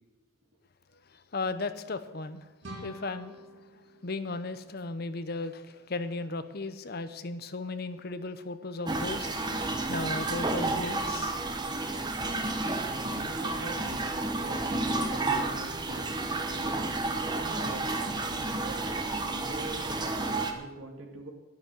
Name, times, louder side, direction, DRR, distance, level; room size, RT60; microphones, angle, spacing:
voice 1, 1.3-2.4 2.8-3.3 4.0-9.3 9.9-11.4, left 3 dB, 50° left, 0.8 m, -35 dB
sound 1, 2.6-5.4, right 1 dB, 60° right, 2.1 m, -48 dB
sound 2, 8.9-20.5, right 2 dB, 20° right, 1.0 m, -31 dB
voice 2, 12.9-16.1 16.3-16.7 17.3-17.9 18.3-18.8 19.1-21.3, right 2 dB, 85° right, 2.2 m, -43 dB
10.5 x 9.8 x 7.7 m
head